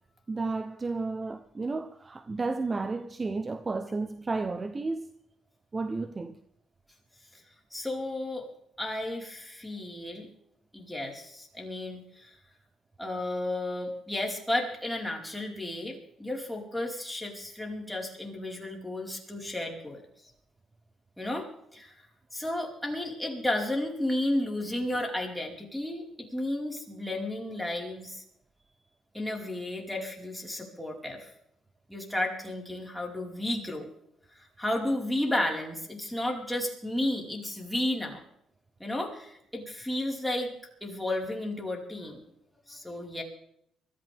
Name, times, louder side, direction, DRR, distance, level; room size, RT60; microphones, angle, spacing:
voice 1, 0.3-5.1 5.7-6.4, right 3 dB, 30° right, 0.8 m, -32 dB
voice 2, 7.7-8.4 8.8-10.3 10.7-12.4 13.0-20.0 21.2-21.9 22.3-28.2 29.1-31.3 31.9-33.9 34.4-38.2 38.8-40.5 40.8-42.2 42.7-43.2, left 1 dB, 5° left, 4.8 m, -33 dB
24.0 x 14.0 x 3.6 m
cardioid pair, 90°, 0 cm